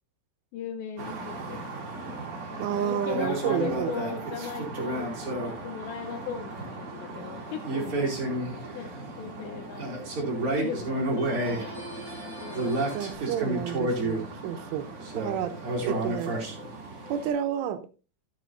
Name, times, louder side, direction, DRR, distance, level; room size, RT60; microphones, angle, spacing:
voice 1, 0.5-1.9 2.5-8.1 8.7-8.9 9.2-9.9 10.4-13.0, left 7 dB, 75° left, 7 dB, 2.7 m, -38 dB
sound 1, 1.0-17.3, right 2 dB, 35° right, 2.9 m, -32 dB
voice 2, 2.6-3.9 12.9-14.9 15.2-15.5 15.8-16.3 17.1-17.8, right 9 dB, 80° right, 8 dB, 3.2 m, -30 dB
sound 2, 7.1-7.8 11.2-13.1, equal, 30° left, 3.6 m, -44 dB
14.0 x 8.4 x 2.6 m, 0.31 s
omnidirectional pair, 5.8 m